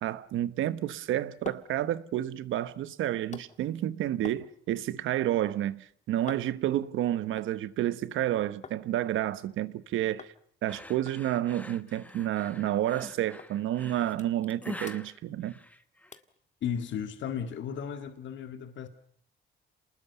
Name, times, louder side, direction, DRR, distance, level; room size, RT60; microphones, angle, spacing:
voice 1, 0.0-10.3 10.6-15.6, right 12 dB, 80° right, 1.1 m, -30 dB
sound 1, 1.2-8.8 9.1-9.8 10.2-10.4 10.7-10.8 11.1-12.4 12.7-12.8 13.4-13.5 13.9-14.6 14.8-15.7 16.1-16.4 16.9-17.0, left 5 dB, 35° left, 1.9 m, -50 dB
sound 2, 10.7-16.2, left 1 dB, 5° left, 1.6 m, -45 dB
voice 2, 16.6-18.9, left 8 dB, 70° left, 2.0 m, -35 dB
27.0 x 20.0 x 7.0 m
cardioid pair, 90°, 20 cm